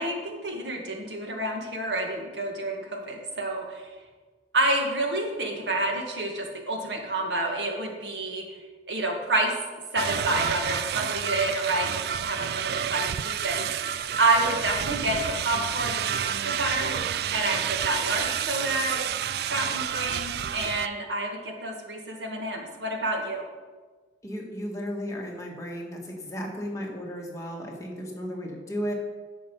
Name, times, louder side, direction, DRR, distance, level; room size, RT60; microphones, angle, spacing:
voice 1, 0.0-3.9 4.5-8.4 8.9-9.5 9.9-16.9 17.3-19.1 19.5-23.5, right 2 dB, 80° right, 2 dB, 1.8 m, -29 dB
sound 1, 10.0-20.9, right 9 dB, 60° right, 0.3 m, -30 dB
voice 2, 24.2-28.9, equal, 20° left, -1 dB, 1.7 m, -34 dB
10.5 x 6.8 x 5.5 m, 1.4 s
head